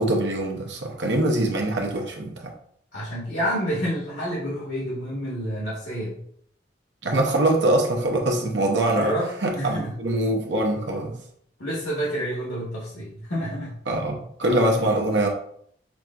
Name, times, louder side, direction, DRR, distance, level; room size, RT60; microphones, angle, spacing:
voice 1, 0.0-2.5 7.0-9.1 9.4-11.1 13.9-15.3, right 1 dB, 70° right, 1 dB, 0.8 m, -23 dB
voice 2, 2.9-6.2 8.9-9.9 11.6-13.8 14.7-14.8, equal, 60° left, -6 dB, 1.2 m, -29 dB
6.0 x 2.6 x 2.4 m, 0.65 s
head